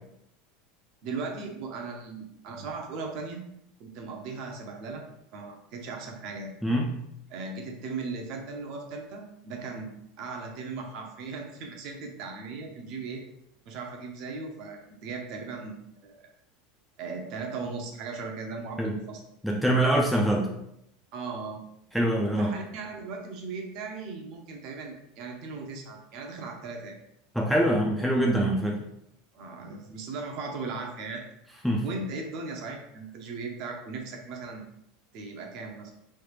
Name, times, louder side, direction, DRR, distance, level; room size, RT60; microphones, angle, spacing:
voice 1, 1.0-3.4 3.8-5.0 5.3-6.5 7.3-13.2 13.7-16.2 17.0-19.2 21.1-21.6 22.4-27.0 29.3-31.2 31.8-34.6 35.1-35.9, right 4 dB, 45° right, 2 dB, 0.6 m, -38 dB
voice 2, 6.6-6.9 18.8-19.0 19.4-20.5 21.9-22.5 27.4-28.8 31.6-31.8, right 1 dB, ahead, -2 dB, 0.3 m, -24 dB
3.2 x 2.3 x 3.3 m, 0.77 s
supercardioid pair, 165°, 0 cm